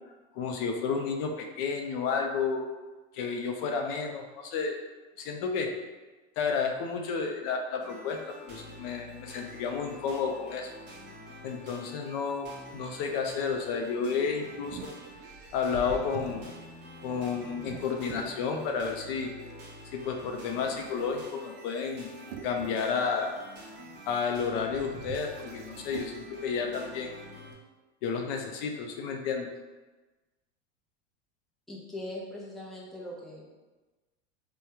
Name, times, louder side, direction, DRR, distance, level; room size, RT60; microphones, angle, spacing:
voice 1, 0.4-2.7 3.1-4.8 5.2-5.7 6.4-10.7 11.4-12.5 12.7-14.9 15.5-16.5 17.0-19.3 19.9-22.1 22.4-23.3 24.1-27.1 28.0-29.5, left 5 dB, 65° left, 3 dB, 0.5 m, -31 dB
sound 1, 7.8-27.5, equal, 35° right, 0.9 m, -48 dB
sound 2, 14.1-18.9 19.5-26.1, right 5 dB, 60° right, 0.4 m, -47 dB
voice 2, 31.7-33.5, left 1 dB, ahead, -4 dB, 0.6 m, -40 dB
3.4 x 2.2 x 2.8 m, 1.2 s
supercardioid pair, 110°, 31 cm